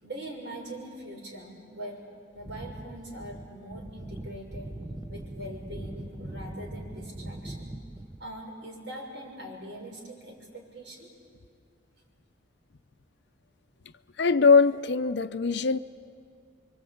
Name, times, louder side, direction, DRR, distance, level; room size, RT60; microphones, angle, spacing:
voice 1, 0.0-2.0 2.3-4.7 5.1-7.7 8.2-11.1, right 1 dB, 65° right, 6.2 m, -42 dB
sound 1, 2.4-8.4, right 1 dB, 15° right, 0.6 m, -41 dB
voice 2, 14.2-15.8, left 4 dB, 60° left, 0.6 m, -21 dB
26.0 x 24.5 x 8.6 m
head